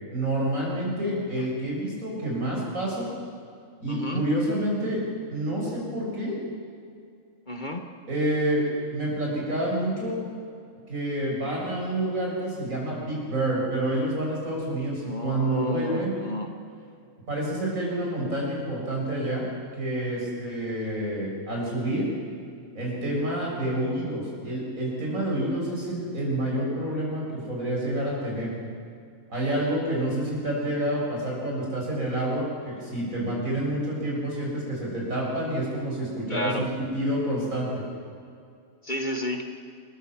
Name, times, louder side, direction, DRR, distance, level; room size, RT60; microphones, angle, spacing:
voice 1, 0.1-3.1 3.8-5.0 5.3-6.4 8.1-8.6 8.9-10.2 10.9-16.1 17.3-19.4 19.8-22.1 22.8-28.5 29.3-37.8, right 1 dB, 70° right, -3 dB, 7.2 m, -28 dB
voice 2, 3.9-4.2 7.5-7.8 15.0-16.5 36.3-36.7 38.8-39.5, left 1 dB, 35° left, 4 dB, 1.4 m, -31 dB
28.5 x 14.0 x 7.5 m, 2.4 s
omnidirectional pair, 1.5 m